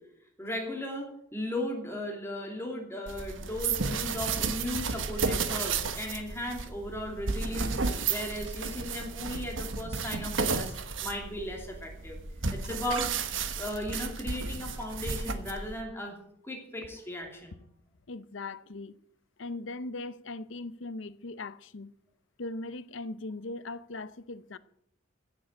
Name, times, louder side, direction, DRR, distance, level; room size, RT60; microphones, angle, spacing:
voice 1, 0.4-7.8 8.1-10.7 11.0-12.2 12.5-13.1 13.5-16.2 16.4-17.6, left 1 dB, 10° left, 2.8 m, -36 dB
sound 1, 3.1-15.8, right 5 dB, 75° right, 1.2 m, -33 dB
voice 2, 18.1-19.0 19.4-21.9 22.4-24.6, left 2 dB, 70° left, 0.7 m, -39 dB
15.0 x 7.5 x 7.7 m
head